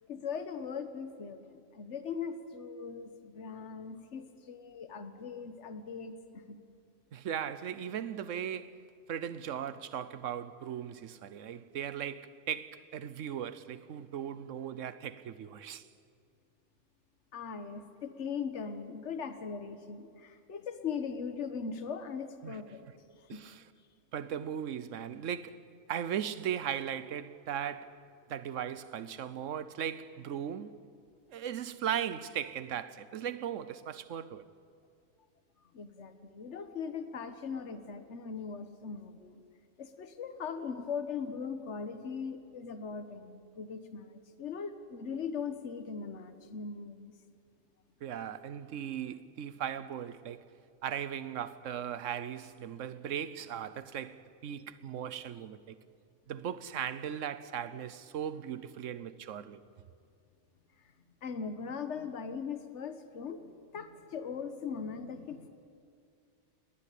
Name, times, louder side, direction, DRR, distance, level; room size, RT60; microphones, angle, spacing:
voice 1, 0.0-6.6 17.3-22.9 23.3-23.5 35.7-39.4 39.8-47.1 61.2-65.5, left 6 dB, 70° left, 1.5 m, -40 dB
voice 2, 7.1-8.8 9.1-15.8 22.4-22.6 23.3-23.6 24.1-25.6 25.9-28.0 28.3-30.7 31.3-34.4 48.0-50.5 50.8-55.8 56.3-59.6, right 9 dB, 90° right, 1.2 m, -38 dB
20.0 x 19.5 x 8.4 m
omnidirectional pair, 1.3 m